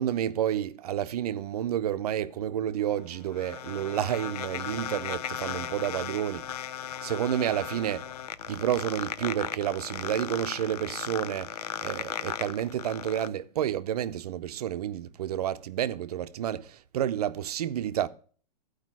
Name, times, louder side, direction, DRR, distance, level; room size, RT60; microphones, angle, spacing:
voice 1, 0.0-6.5 7.0-8.1 8.5-11.5 11.8-18.1, right 10 dB, 65° right, 0.7 m, -30 dB
sound 1, 2.8-13.3, left 11 dB, 65° left, 0.5 m, -36 dB
13.0 x 5.0 x 6.0 m
hypercardioid pair, 160°, 21 cm